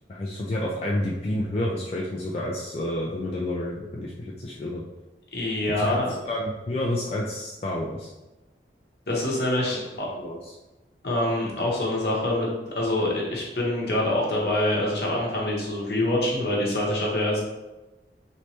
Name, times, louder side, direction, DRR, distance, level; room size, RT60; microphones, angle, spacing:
voice 1, 0.1-4.8 5.6-8.1 9.7-9.8 10.2-10.4, left 1 dB, 35° left, -4 dB, 0.3 m, -29 dB
voice 2, 5.3-6.1 9.1-10.1 11.0-17.4, left 1 dB, 65° left, -3 dB, 0.9 m, -25 dB
3.2 x 3.0 x 2.9 m, 1.1 s
head